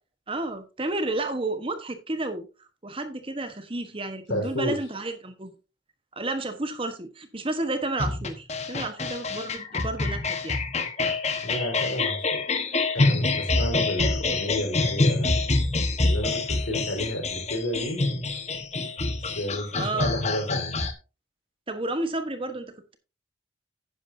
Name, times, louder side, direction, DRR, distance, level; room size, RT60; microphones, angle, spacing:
voice 1, 0.3-2.5 2.8-5.5 6.2-10.6 19.7-20.1 21.7-23.0, right 2 dB, 30° right, 1.2 m, -31 dB
voice 2, 4.3-4.8 11.4-12.4 12.9-15.6 16.0-18.2 19.3-20.8, equal, 90° left, 4.6 m, -31 dB
sound 1, 8.0-20.9, left 3 dB, 35° left, 1.3 m, -26 dB
11.0 x 9.9 x 2.7 m
head